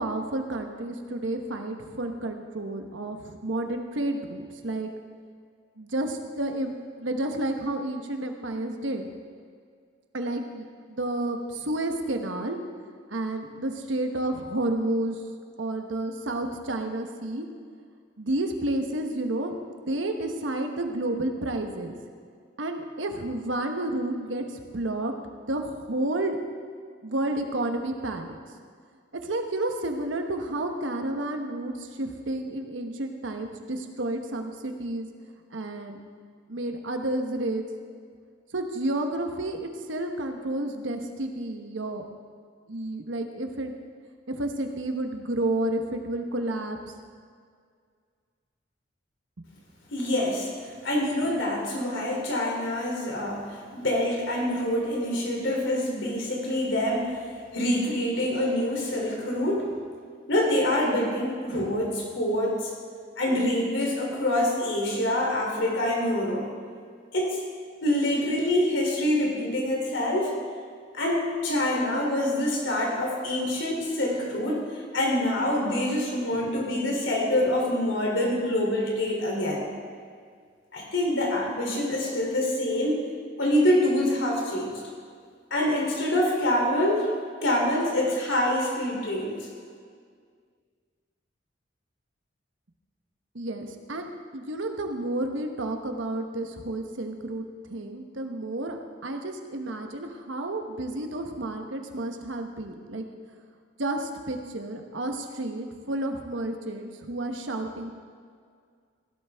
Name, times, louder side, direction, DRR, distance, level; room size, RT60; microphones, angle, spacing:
voice 1, 0.0-4.9 5.8-6.7 7.0-9.1 10.1-12.6 13.1-15.2 15.6-17.5 18.2-19.5 19.9-22.0 22.6-25.1 25.5-26.4 27.0-28.4 29.2-35.1 35.5-36.0 36.5-37.6 38.5-42.0 42.7-43.7 44.3-46.8 49.4-49.5 93.3-98.8 99.0-103.0 103.8-108.0, right 1 dB, 80° right, 5 dB, 1.1 m, -31 dB
voice 2, 49.9-50.5 50.8-57.2 57.5-59.7 60.3-62.7 63.2-66.5 67.1-67.4 67.8-70.3 70.9-79.7 80.7-83.0 83.4-84.8 85.5-87.1 87.4-89.5, left 1 dB, 80° left, -1 dB, 3.1 m, -26 dB
15.5 x 12.0 x 3.5 m, 2.1 s
head